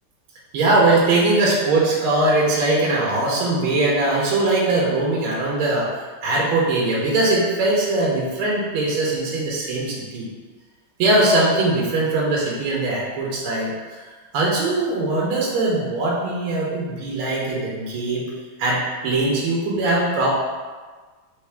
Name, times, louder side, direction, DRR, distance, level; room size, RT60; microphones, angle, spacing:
voice 1, 0.5-5.9 6.2-10.2 11.0-13.7 14.3-18.2 18.6-20.3, right 2 dB, 85° right, -4 dB, 1.7 m, -21 dB
4.6 x 3.1 x 3.4 m, 1.4 s
omnidirectional pair, 2.3 m